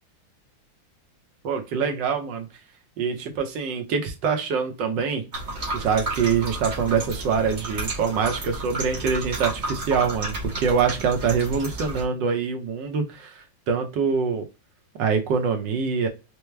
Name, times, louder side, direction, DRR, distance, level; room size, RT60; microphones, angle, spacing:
voice 1, 1.4-2.5 3.0-5.2 5.7-14.5 15.0-16.1, right 6 dB, 65° right, 5 dB, 1.5 m, -24 dB
sound 1, 5.3-12.0, right 2 dB, 40° right, 1.1 m, -32 dB
4.6 x 2.1 x 3.2 m, 0.28 s
omnidirectional pair, 2.2 m